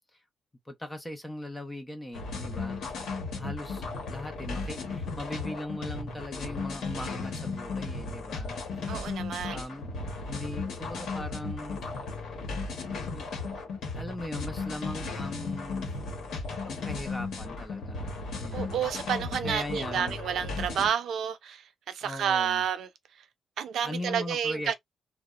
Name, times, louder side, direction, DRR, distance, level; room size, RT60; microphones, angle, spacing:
voice 1, 0.7-2.9 3.4-9.0 9.5-9.9 10.2-11.8 12.3-12.4 13.1-13.5 13.9-15.9 16.7-18.8 19.4-20.2 22.0-22.7 23.8-24.7, left 1 dB, 10° left, 0.4 m, -39 dB
sound 1, 2.1-20.9, left 3 dB, 75° left, 0.9 m, -35 dB
voice 2, 8.9-9.6 18.5-21.6 21.9-22.9 23.6-24.7, right 8 dB, 75° right, 0.4 m, -30 dB
2.8 x 2.0 x 2.3 m
wide cardioid pair, 180°, 0 cm